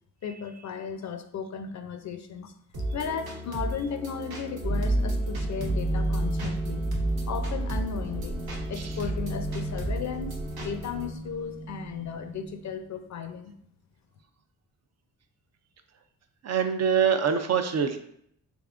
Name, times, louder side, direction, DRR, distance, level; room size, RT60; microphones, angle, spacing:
voice 1, 0.2-2.5 2.9-6.9 7.3-8.4 8.7-13.5, left 6 dB, 55° left, 7 dB, 0.5 m, -35 dB
sound 1, 2.7-11.1, equal, 85° right, 1.0 m, -36 dB
sound 2, 4.6-12.6, right 1 dB, 20° right, 0.8 m, -31 dB
voice 2, 16.4-18.0, right 7 dB, 50° right, 7 dB, 0.4 m, -24 dB
3.5 x 3.4 x 2.5 m, 0.70 s
cardioid pair, 100°, 36 cm